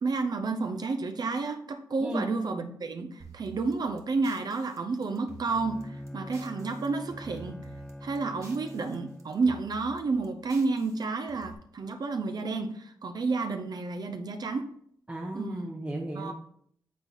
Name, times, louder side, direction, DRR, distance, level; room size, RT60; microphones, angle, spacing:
voice 1, 0.0-7.7 8.0-14.7 15.3-15.7 16.1-16.3, right 3 dB, 60° right, 6 dB, 0.6 m, -31 dB
voice 2, 2.0-2.3 15.1-16.3, right 1 dB, 20° right, 0 dB, 0.9 m, -34 dB
sound 1, 3.2-6.9 7.1-8.9 9.2-11.5, right 5 dB, 40° right, 1.5 m, -50 dB
Bowed string instrument, 5.4-9.5, left 1 dB, 10° left, 0.5 m, -44 dB
8.4 x 3.9 x 4.3 m, 0.65 s
wide cardioid pair, 85°, 8 cm